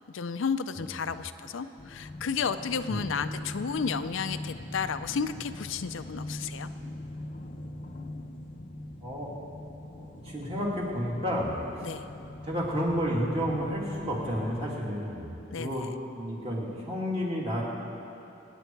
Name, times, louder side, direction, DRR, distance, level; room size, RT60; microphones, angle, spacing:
voice 1, 0.1-6.7 11.8-12.1 15.5-15.9, left 6 dB, 70° left, 10 dB, 0.5 m, -32 dB
voice 2, 0.7-1.2 2.9-3.1 9.0-9.3 10.0-11.9 12.4-15.9 16.1-17.6, equal, 30° right, -4 dB, 2.6 m, -31 dB
sound 1, 1.8-14.8, left 1 dB, 35° left, 0.7 m, -41 dB
25.0 x 9.3 x 4.6 m, 2.9 s
head